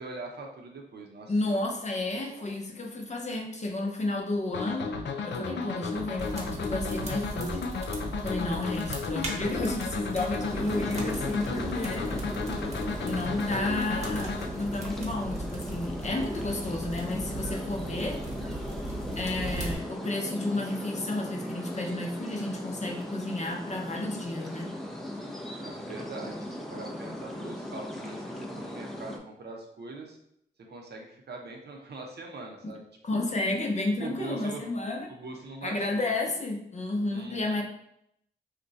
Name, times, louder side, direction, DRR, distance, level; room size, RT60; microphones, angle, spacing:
voice 1, 0.0-1.8 2.1-2.5 25.6-30.2 30.7-33.2 34.0-34.7 35.1-36.0 37.1-37.6, right 3 dB, 60° right, 1 dB, 0.7 m, -42 dB
voice 2, 1.3-4.9 5.2-7.6 8.2-12.3 13.0-18.2 19.2-24.7 33.0-35.1 35.6-37.6, left 2 dB, 40° left, 1 dB, 0.7 m, -32 dB
sound 1, 4.5-14.5, left 4 dB, 75° left, 0.4 m, -34 dB
sound 2, 6.2-19.8, right 1 dB, 35° right, 0.9 m, -38 dB
sound 3, 10.4-29.2, left 1 dB, ahead, 0.6 m, -38 dB
2.4 x 2.2 x 3.9 m, 0.74 s
cardioid pair, 55°, 19 cm